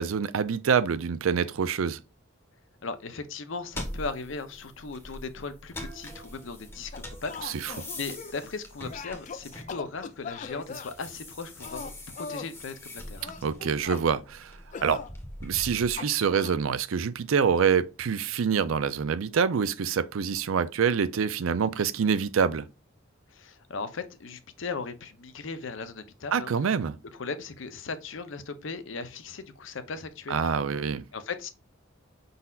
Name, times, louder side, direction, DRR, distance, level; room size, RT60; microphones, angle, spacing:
voice 1, 0.0-2.0 7.4-7.8 13.4-14.6 14.8-15.0 15.4-22.7 26.3-27.0 30.3-31.0, right 6 dB, 85° right, 0.5 m, -26 dB
voice 2, 2.8-13.3 23.3-26.5 27.1-30.6 31.1-31.5, left 4 dB, 70° left, 0.7 m, -38 dB
sound 1, 3.7-10.1 10.5-15.9, left 1 dB, 15° left, 0.9 m, -43 dB
sound 2, 6.9-8.5 8.9-10.9 11.6-12.5 13.2-14.1 14.7-15.1 16.0-16.6, left 5 dB, 35° left, 0.3 m, -40 dB
5.5 x 4.0 x 2.4 m
head